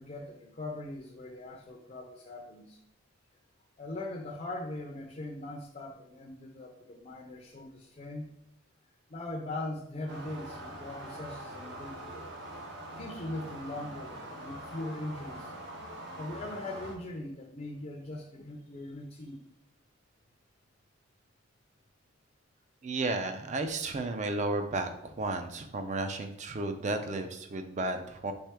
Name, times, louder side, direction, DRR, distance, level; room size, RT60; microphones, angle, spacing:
voice 1, 0.0-2.8 3.8-8.3 9.1-12.3 12.9-15.5 16.2-19.5, left 2 dB, 35° left, 1 dB, 0.5 m, -40 dB
sound 1, 10.1-16.9, right 1 dB, 60° right, 0.9 m, -43 dB
voice 2, 22.8-28.3, right 2 dB, 35° right, 7 dB, 0.4 m, -33 dB
4.3 x 3.3 x 3.5 m, 0.75 s
head